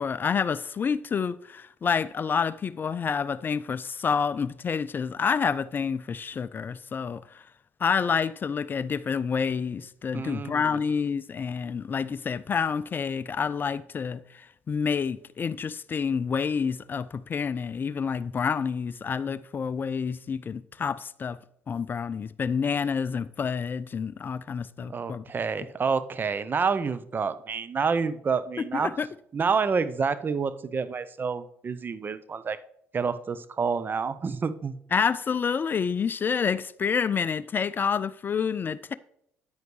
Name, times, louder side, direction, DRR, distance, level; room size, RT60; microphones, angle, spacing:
voice 1, 0.0-7.4 7.8-21.4 21.7-25.2 28.7-29.1 34.9-38.9, left 6 dB, 35° left, 0.3 m, -28 dB
voice 2, 10.1-10.8 24.8-28.9 29.3-32.6 32.9-34.8, right 5 dB, 35° right, 0.6 m, -28 dB
9.5 x 9.2 x 3.2 m
hypercardioid pair, 50°, 6 cm